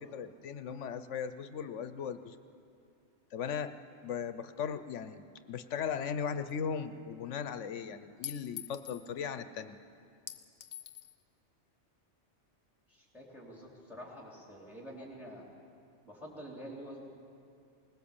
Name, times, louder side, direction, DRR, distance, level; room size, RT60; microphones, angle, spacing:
voice 1, 0.1-2.3 3.3-3.7 4.0-5.2 5.5-9.8, left 7 dB, 80° left, 11 dB, 1.1 m, -37 dB
Chink clink, 6.5-6.6 8.2-9.1 10.3-11.1, left 10 dB, 55° left, 1.1 m, -44 dB
voice 2, 12.9-15.4 16.0-17.1, equal, ahead, -3 dB, 3.0 m, -47 dB
20.5 x 19.5 x 7.2 m, 2.5 s
omnidirectional pair, 1.2 m